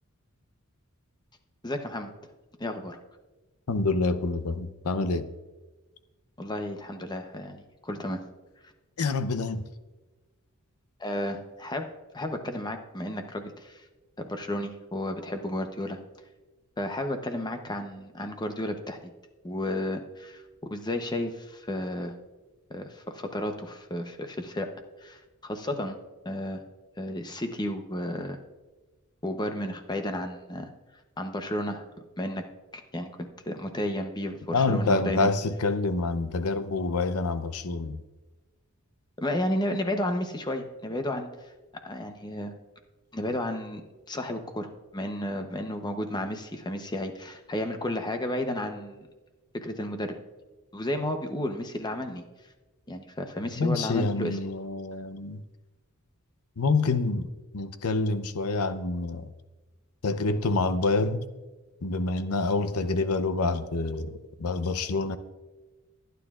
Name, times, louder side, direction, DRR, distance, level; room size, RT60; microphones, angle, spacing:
voice 1, 1.6-2.1 2.6-3.0 6.4-8.2 11.0-11.9 12.1-13.8 14.2-16.0 16.8-19.1 19.4-20.4 20.7-22.1 22.7-24.7 25.0-26.0 26.2-26.6 27.0-28.4 29.2-30.7 31.2-31.8 32.2-32.4 32.7-35.3 39.2-41.3 41.8-42.5 43.1-49.0 49.5-50.2 50.7-52.2 52.9-54.4, left 1 dB, 20° left, 0.8 m, -32 dB
voice 2, 3.7-5.3 9.0-9.6 34.5-38.0 53.6-55.4 56.6-59.3 60.0-61.2 61.8-65.2, left 3 dB, 80° left, 0.7 m, -27 dB
25.0 x 9.3 x 2.4 m
head